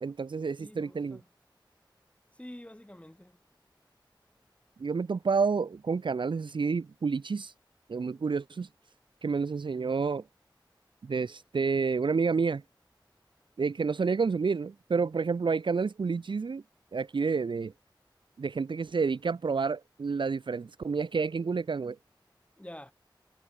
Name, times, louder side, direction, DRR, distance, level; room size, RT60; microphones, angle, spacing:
voice 1, 0.0-1.2 4.8-7.5 7.9-8.7 9.2-10.2 11.0-12.6 13.6-16.6 16.9-17.7 18.4-22.0, right 5 dB, 75° right, 0.5 m, -29 dB
voice 2, 0.6-1.3 2.3-3.4 22.6-22.9, left 1 dB, 15° left, 3.9 m, -47 dB
wide cardioid pair, 55°, 8 cm